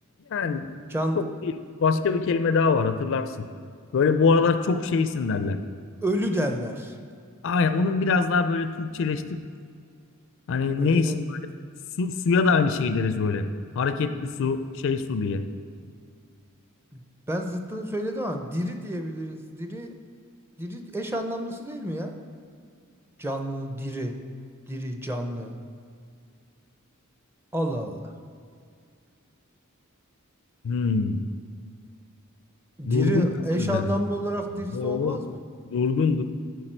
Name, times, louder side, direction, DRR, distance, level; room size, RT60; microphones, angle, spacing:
voice 1, 0.3-0.7 1.2-1.5 1.8-3.5 3.9-5.6 7.4-9.4 10.5-11.4 12.0-13.5 13.8-15.4 30.6-31.2 32.8-33.3 33.5-33.9 34.7-35.2 35.7-36.2, left 4 dB, 60° left, 10 dB, 0.4 m, -24 dB
voice 2, 0.9-1.2 6.0-7.0 10.8-11.2 16.9-17.0 17.3-19.9 20.6-22.1 23.2-24.1 24.7-25.6 27.5-28.1 32.8-35.4, equal, 10° right, 4 dB, 0.5 m, -29 dB
12.0 x 4.7 x 4.4 m, 2.2 s
head